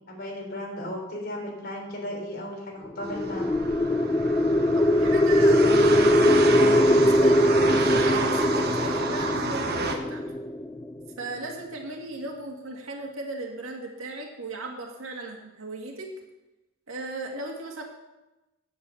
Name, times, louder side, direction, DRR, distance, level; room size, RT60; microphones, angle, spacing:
voice 1, 0.1-3.5, left 1 dB, 50° left, -1 dB, 3.2 m, -35 dB
sound 1, 3.0-11.1, left 1 dB, 15° left, 0.3 m, -21 dB
sound 2, 3.0-10.0, right 4 dB, 50° right, 1.3 m, -30 dB
voice 2, 4.7-10.2 11.2-16.1 16.9-17.8, right 2 dB, 80° right, 1 dB, 2.0 m, -37 dB
9.6 x 8.3 x 7.1 m, 1.0 s
head